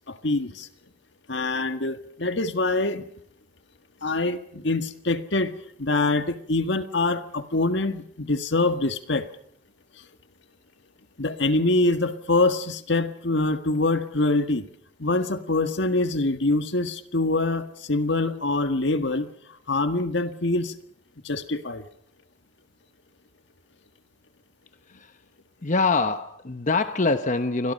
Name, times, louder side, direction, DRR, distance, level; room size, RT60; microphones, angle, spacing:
voice 1, 0.1-0.7 1.3-3.0 4.0-5.5 5.8-9.3 11.2-14.6 15.0-19.3 19.7-20.7 21.2-21.8, left 2 dB, 65° left, 9 dB, 1.7 m, -24 dB
voice 2, 25.6-27.7, left 3 dB, 40° left, 9 dB, 1.0 m, -24 dB
29.5 x 24.0 x 5.4 m, 0.64 s
head